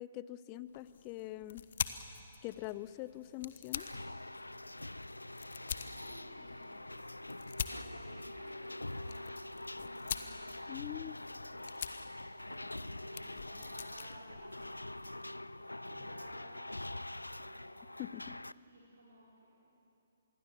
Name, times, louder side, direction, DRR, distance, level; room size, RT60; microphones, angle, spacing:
voice 1, 0.0-1.6 2.4-3.9 10.7-11.2 18.0-18.3, left 16 dB, 30° left, 16 dB, 0.7 m, -43 dB
sound 1, 0.7-15.2, left 7 dB, 55° left, 1.1 m, -46 dB
sound 2, 3.7-18.5, left 1 dB, 90° left, 0.5 m, -45 dB
voice 2, 6.0-7.2 7.6-9.4 9.8-10.6 12.3-16.7 17.3-18.0 18.7-19.7, right 1 dB, 70° right, -5 dB, 5.0 m, -58 dB
26.0 x 22.0 x 7.1 m, 2.7 s
figure-of-eight pair, 130°, 0 cm